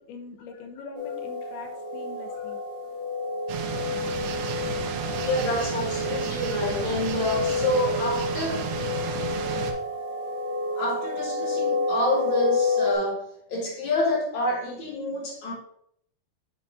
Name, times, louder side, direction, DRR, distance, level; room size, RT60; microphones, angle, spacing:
voice 1, 0.0-2.6, left 4 dB, 75° left, 3 dB, 2.4 m, -43 dB
sound 1, 0.9-12.9, left 3 dB, 40° right, 2.5 m, -29 dB
sound 2, 3.5-9.7, right 6 dB, 75° right, 2.7 m, -33 dB
voice 2, 5.2-8.7 10.8-15.5, left 1 dB, 60° left, -3 dB, 2.1 m, -28 dB
8.0 x 6.4 x 2.7 m, 0.70 s
omnidirectional pair, 5.3 m